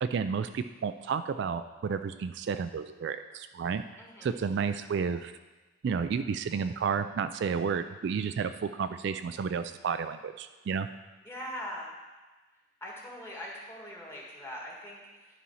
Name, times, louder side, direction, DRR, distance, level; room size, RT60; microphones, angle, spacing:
voice 1, 0.0-3.8 4.2-5.3 5.8-10.9, right 6 dB, 60° right, 10 dB, 0.3 m, -31 dB
voice 2, 4.0-4.3 11.2-11.9 12.8-15.0, equal, 15° left, -3 dB, 1.7 m, -41 dB
11.0 x 4.2 x 5.6 m, 1.2 s
head